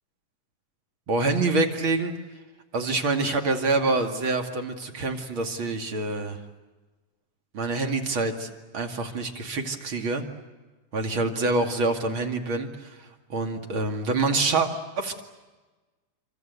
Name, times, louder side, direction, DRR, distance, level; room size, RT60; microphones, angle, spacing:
voice 1, 1.1-2.1 2.7-6.4 7.5-8.5 8.7-10.2 10.9-14.7 15.0-15.2, right 3 dB, 40° right, 5 dB, 2.7 m, -26 dB
27.5 x 25.5 x 8.2 m, 1.2 s
omnidirectional pair, 3.8 m